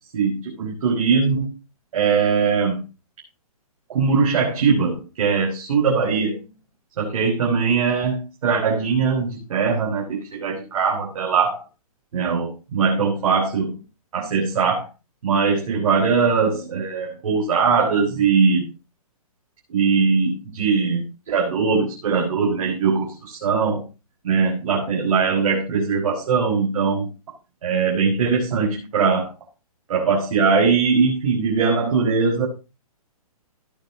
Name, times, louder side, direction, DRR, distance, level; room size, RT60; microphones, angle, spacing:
voice 1, 0.1-1.5 1.9-2.8 3.9-6.4 7.0-11.6 12.1-13.8 14.1-14.9 15.2-18.7 19.7-23.8 24.2-27.1 27.6-29.3 29.9-32.5, right 5 dB, 60° right, -3 dB, 5.2 m, -21 dB
17.5 x 9.1 x 2.8 m, 0.28 s
hypercardioid pair, 155°, 19 cm